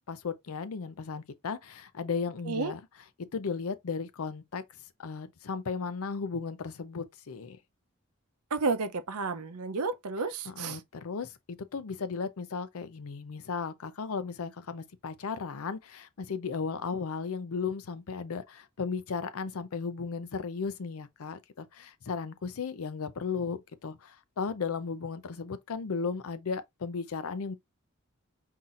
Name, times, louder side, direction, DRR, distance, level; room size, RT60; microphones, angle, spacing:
voice 1, 0.1-2.8 3.2-4.6 5.0-7.6 10.5-27.5, left 5 dB, 80° left, 0.5 m, -35 dB
voice 2, 8.5-10.8, right 4 dB, 90° right, 0.6 m, -31 dB
5.5 x 2.7 x 2.5 m
head